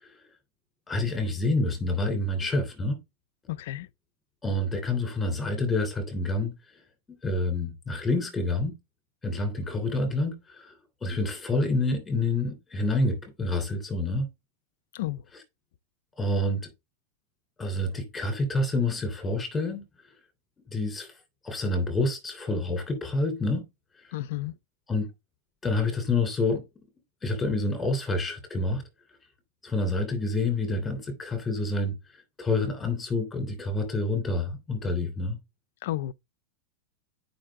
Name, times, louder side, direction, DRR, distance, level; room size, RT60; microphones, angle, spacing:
voice 1, 0.9-3.0 4.4-6.5 7.2-8.7 9.2-10.7 11.0-14.3 16.2-16.7 17.6-19.8 20.7-21.1 21.4-23.6 24.9-25.1 25.6-26.6 27.2-28.8 29.6-31.9 32.4-35.4, left 2 dB, 10° left, 3.0 m, -28 dB
voice 2, 3.5-3.9 14.9-15.2 24.1-24.5 35.8-36.1, left 15 dB, 65° left, 0.5 m, -32 dB
8.8 x 5.3 x 3.6 m
supercardioid pair, 160°, 0 cm